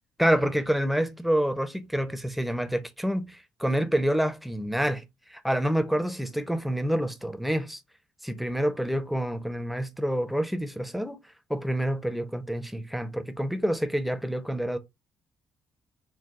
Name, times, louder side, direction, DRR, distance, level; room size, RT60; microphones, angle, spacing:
voice 1, 0.2-5.0 5.3-7.8 8.2-11.2 11.5-14.8, equal, ahead, 0.7 m, -27 dB
4.5 x 2.3 x 3.8 m
cardioid pair, 95°, 8 cm